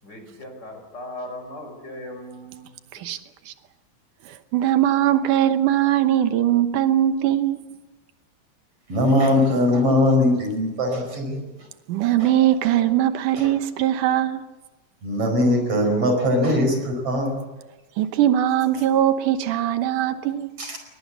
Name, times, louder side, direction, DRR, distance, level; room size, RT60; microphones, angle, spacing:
voice 1, 0.0-2.7, left 1 dB, 30° left, 6.3 m, -38 dB
voice 2, 4.5-7.7 11.9-14.4 18.0-20.5, right 12 dB, 90° right, 2.6 m, -20 dB
voice 3, 8.9-11.4 12.2-12.3 12.6-12.7 13.4-13.5 15.0-17.4 20.6-20.8, left 1 dB, 50° right, 6.0 m, -21 dB
21.5 x 21.0 x 8.2 m
omnidirectional pair, 3.5 m